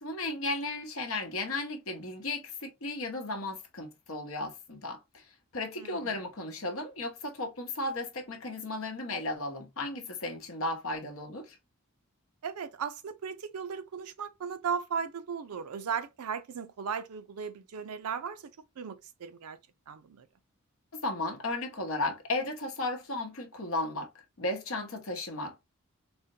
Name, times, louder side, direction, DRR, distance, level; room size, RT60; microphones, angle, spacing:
voice 1, 0.0-5.2 5.5-11.6 21.0-24.1 24.4-25.6, left 2 dB, 65° left, 1.0 m, -35 dB
voice 2, 5.8-6.1 12.4-18.5 18.8-19.6 19.9-20.3, right 6 dB, 85° right, 0.5 m, -36 dB
4.1 x 2.1 x 2.7 m
head